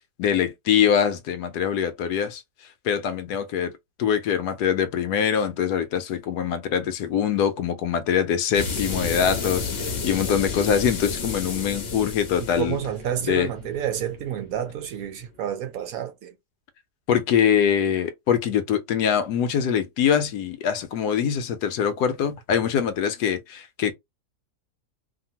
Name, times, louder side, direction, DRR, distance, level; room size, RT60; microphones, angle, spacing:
voice 1, 0.2-2.4 2.8-3.7 4.0-12.8 13.3-13.5 17.1-23.9, left 8 dB, 80° left, 1.2 m, -23 dB
sound 1, 8.5-15.0, left 4 dB, 50° left, 0.9 m, -31 dB
voice 2, 12.6-16.3, right 10 dB, 70° right, 1.0 m, -29 dB
2.8 x 2.5 x 2.7 m
omnidirectional pair, 1.7 m